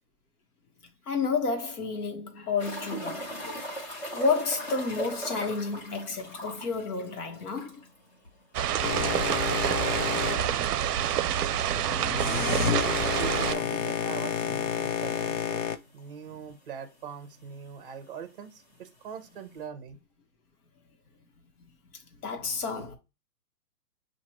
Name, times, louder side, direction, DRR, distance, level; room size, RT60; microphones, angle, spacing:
voice 1, 1.1-3.3 4.1-7.8 22.2-23.0, left 4 dB, 70° left, 1.3 m, -30 dB
sound 1, 2.6-8.0 8.3-8.4 8.7-8.8 11.6-11.7 13.4-13.5 14.2-14.3 14.6-14.7 15.6-15.7 15.8-16.4 17.4-17.5, right 1 dB, 25° left, 1.2 m, -38 dB
sound 2, 8.5-13.5, right 10 dB, 75° right, 0.5 m, -27 dB
Boat Water vehicle, 8.8-15.8, left 8 dB, 55° left, 0.5 m, -31 dB
voice 2, 12.2-15.6 15.9-20.0, right 7 dB, 35° right, 0.7 m, -41 dB
6.1 x 2.5 x 2.9 m
hypercardioid pair, 155°, 48 cm